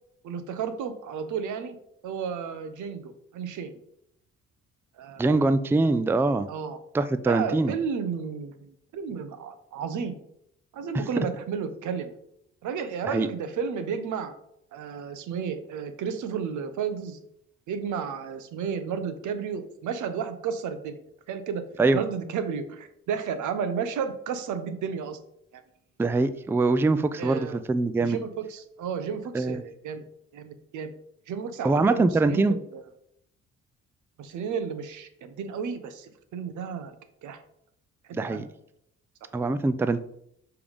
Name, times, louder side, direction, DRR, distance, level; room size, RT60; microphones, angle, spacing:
voice 1, 0.2-1.8 2.0-3.8 5.0-5.5 6.5-6.8 7.3-10.2 10.7-12.1 12.6-14.3 14.7-17.2 17.7-21.0 21.3-21.6 21.9-25.2 25.5-25.6 27.2-27.6 28.0-30.0 30.3-30.9 31.3-32.8 34.2-37.0 37.2-37.4 38.3-38.4 39.3-39.4, right 6 dB, 80° right, 10 dB, 0.9 m, -32 dB
voice 2, 5.2-6.5 6.9-7.7 13.0-13.3 21.8-22.0 26.0-28.2 29.3-29.6 31.6-32.6 38.1-38.5 39.3-40.0, right 3 dB, 10° right, 13 dB, 0.3 m, -23 dB
6.8 x 3.5 x 5.2 m, 0.72 s
cardioid pair, 90°, 30 cm